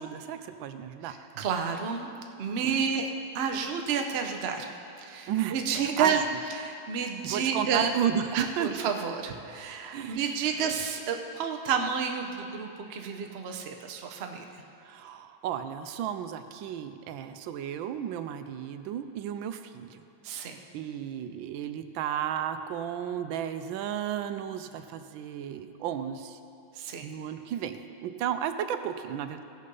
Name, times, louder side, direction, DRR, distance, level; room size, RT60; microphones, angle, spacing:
voice 1, 0.0-1.1 2.6-2.8 5.3-6.2 7.2-8.2 8.6-8.9 9.9-10.2 14.8-20.0 20.7-26.4 27.0-29.4, right 9 dB, 85° right, 9 dB, 1.4 m, -33 dB
voice 2, 1.0-2.1 2.4-3.0 3.3-7.9 8.3-14.6 20.2-20.6 26.7-27.1, right 6 dB, 60° right, 4 dB, 0.6 m, -30 dB
16.0 x 6.5 x 5.4 m, 2.6 s
omnidirectional pair, 2.1 m